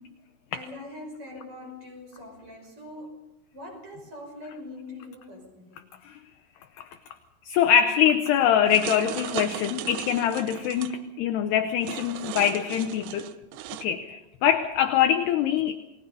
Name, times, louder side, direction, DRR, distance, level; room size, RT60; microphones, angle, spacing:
voice 1, 0.5-3.3 3.5-5.8, left 1 dB, 25° right, 1 dB, 6.3 m, -42 dB
voice 2, 7.5-13.4 13.8-15.8, left 9 dB, 80° left, 8 dB, 2.4 m, -23 dB
sound 1, 8.7-10.9 11.8-13.9, right 13 dB, 80° right, 3.3 m, -37 dB
29.0 x 20.0 x 5.4 m, 0.95 s
omnidirectional pair, 5.9 m